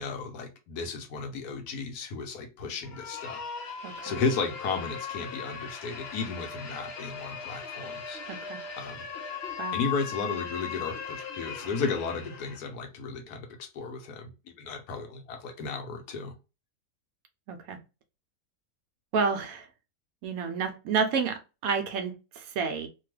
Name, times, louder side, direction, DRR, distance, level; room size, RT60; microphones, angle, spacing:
voice 1, 0.0-8.2 8.8-9.1 9.7-14.3 14.6-16.3, left 4 dB, 80° left, 1.2 m, -34 dB
sound 1, 2.8-12.7, left 6 dB, 60° left, 0.6 m, -38 dB
voice 2, 3.8-4.1 8.3-8.6 9.6-9.8 17.5-17.8 19.1-19.7 20.2-22.9, right 5 dB, 70° right, 0.9 m, -30 dB
2.9 x 2.2 x 3.2 m
omnidirectional pair, 1.7 m